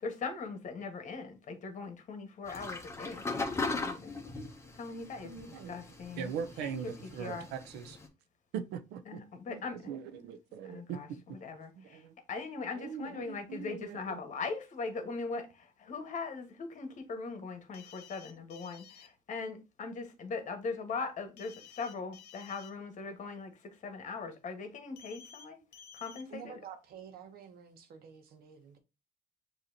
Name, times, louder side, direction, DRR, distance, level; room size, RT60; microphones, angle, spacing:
voice 1, 0.0-4.2 4.7-5.3 5.7-6.3 6.6-6.8 7.2-7.5 9.1-9.9 10.6-25.6 25.9-26.6, left 4 dB, 45° left, 1.4 m, -40 dB
sound 1, 2.5-8.1, left 3 dB, 15° left, 1.1 m, -39 dB
voice 2, 5.2-5.8 6.1-8.0 8.5-9.0 9.5-9.6 9.8-11.4 11.8-12.1 12.7-14.2, right 7 dB, 90° right, 0.6 m, -41 dB
sound 2, 17.7-19.1 21.4-22.7 25.0-25.4 25.7-26.2, left 8 dB, 80° left, 0.9 m, -53 dB
voice 3, 26.3-28.8, right 7 dB, 65° right, 1.1 m, -49 dB
6.6 x 2.9 x 2.7 m
cardioid pair, 110°, 17 cm